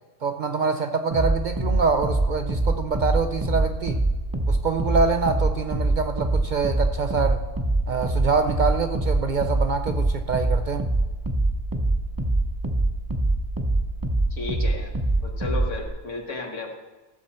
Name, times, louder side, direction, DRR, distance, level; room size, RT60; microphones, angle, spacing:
voice 1, 0.2-4.0 4.5-7.4 7.9-10.8, right 5 dB, 60° right, 8 dB, 0.5 m, -25 dB
sound 1, 1.1-15.9, right 2 dB, 20° right, 0.8 m, -25 dB
voice 2, 14.3-14.9 15.2-16.7, left 3 dB, 90° left, 2 dB, 1.8 m, -33 dB
15.0 x 7.3 x 4.2 m, 1.2 s
omnidirectional pair, 1.2 m